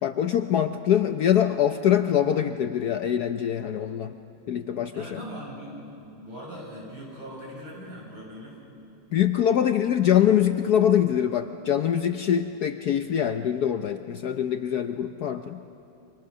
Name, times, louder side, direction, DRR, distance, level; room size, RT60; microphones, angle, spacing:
voice 1, 0.0-4.1 4.5-5.2 9.1-15.6, left 9 dB, 65° left, 8 dB, 1.0 m, -24 dB
voice 2, 4.9-8.6, equal, 70° right, -4 dB, 7.6 m, -40 dB
28.5 x 25.0 x 6.7 m, 2.8 s
omnidirectional pair, 2.2 m